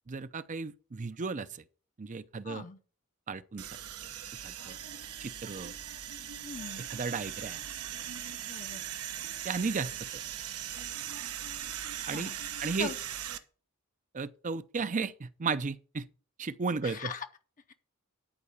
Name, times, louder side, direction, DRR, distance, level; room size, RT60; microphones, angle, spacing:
voice 1, 0.1-1.6 2.0-2.6 3.3-3.6 4.4-4.8 5.2-5.8 6.9-7.6 9.4-10.2 12.1-12.3 12.6-12.9 14.1-16.1 16.4-17.1, right 4 dB, 35° right, 0.5 m, -34 dB
voice 2, 2.4-2.8 6.4-6.8 8.5-8.9 12.0-12.9 16.8-17.3, left 5 dB, 35° left, 0.7 m, -41 dB
sound 1, 3.6-13.4, right 10 dB, 90° right, 1.0 m, -40 dB
11.5 x 4.7 x 6.7 m
head